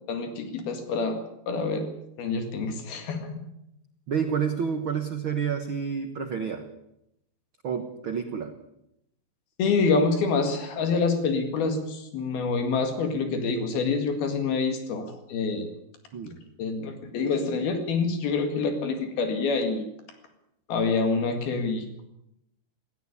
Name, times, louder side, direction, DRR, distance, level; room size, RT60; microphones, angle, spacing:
voice 1, 0.1-1.2 1.5-1.8 2.2-3.3 9.6-15.7 16.6-19.9 20.7-22.0, left 4 dB, 80° left, 6 dB, 4.0 m, -26 dB
voice 2, 4.1-6.7 7.6-8.6 16.1-16.4, right 7 dB, 80° right, 7 dB, 1.1 m, -29 dB
17.0 x 17.0 x 9.8 m, 0.82 s
omnidirectional pair, 4.3 m